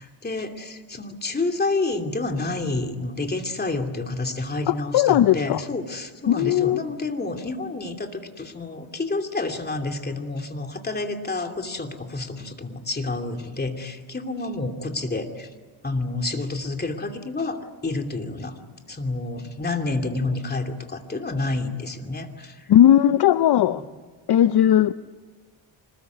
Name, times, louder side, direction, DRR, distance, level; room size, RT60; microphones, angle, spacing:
voice 1, 0.0-15.5 15.8-18.6 18.9-22.7 23.6-23.8, left 2 dB, 20° left, 4 dB, 2.8 m, -29 dB
voice 2, 4.7-5.6 6.3-6.8 22.7-23.8 24.3-24.9, left 11 dB, 55° left, 13 dB, 0.7 m, -17 dB
25.5 x 20.5 x 9.5 m, 1.4 s
cardioid pair, 110°, 47 cm